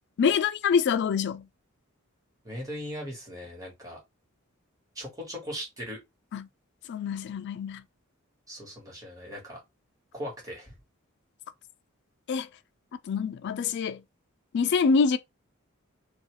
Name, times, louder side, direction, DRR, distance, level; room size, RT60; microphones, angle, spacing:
voice 1, 0.2-1.4 6.3-6.5 6.9-7.8 12.3-12.5 13.1-14.0 14.5-15.2, left 5 dB, 55° left, 0.3 m, -25 dB
voice 2, 2.4-4.0 4.9-6.0 8.5-9.6 10.1-10.8, equal, 15° right, 1.3 m, -39 dB
2.6 x 2.3 x 3.0 m
head